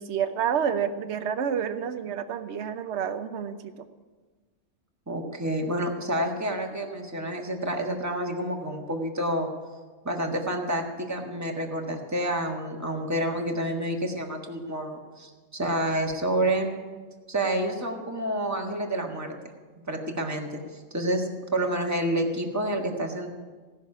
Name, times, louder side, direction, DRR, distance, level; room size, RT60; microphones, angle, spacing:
voice 1, 0.0-3.7, right 8 dB, 65° right, 10 dB, 1.1 m, -29 dB
voice 2, 5.1-9.5 10.0-16.7 17.3-19.5 19.9-23.3, right 1 dB, 15° right, 1 dB, 1.5 m, -29 dB
17.0 x 6.5 x 9.8 m, 1.4 s
omnidirectional pair, 1.3 m